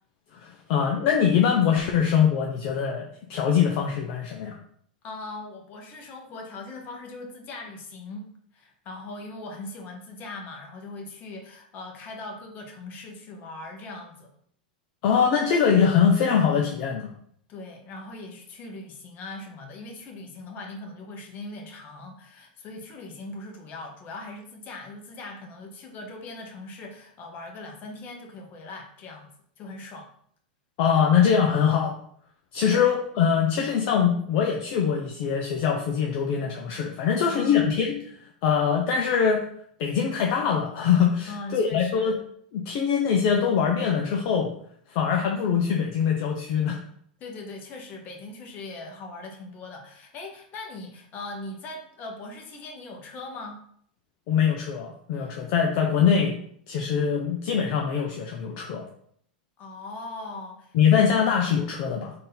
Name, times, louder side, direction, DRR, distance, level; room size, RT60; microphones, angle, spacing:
voice 1, 0.3-4.6 15.0-17.1 30.8-32.0 32.5-39.4 39.8-42.2 42.5-44.5 44.9-46.8 54.3-56.4 56.7-58.8 60.7-62.1, left 7 dB, 55° left, 1 dB, 0.6 m, -23 dB
voice 2, 5.0-14.3 17.5-29.3 29.6-30.1 32.7-32.9 37.2-37.8 41.3-42.2 47.2-53.6 55.2-55.3 59.6-60.7, left 2 dB, 35° left, 2 dB, 1.0 m, -40 dB
3.7 x 2.7 x 3.9 m, 0.64 s
hypercardioid pair, 120°, 5 cm